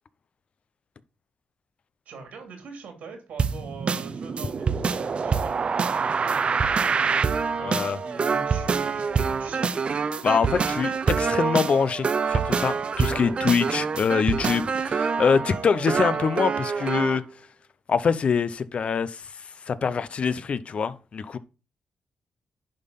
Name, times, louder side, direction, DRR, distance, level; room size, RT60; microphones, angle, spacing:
voice 1, 2.0-5.6 6.0-9.1 9.4-9.8 13.1-13.6, right 4 dB, 85° right, 2.8 m, -43 dB
sound 1, 3.4-17.2, right 5 dB, 50° right, 0.6 m, -26 dB
voice 2, 7.6-8.0 10.2-17.2 17.9-19.3 19.7-21.4, left 6 dB, 55° left, 0.7 m, -24 dB
10.5 x 3.7 x 5.4 m
cardioid pair, 80°, 2 cm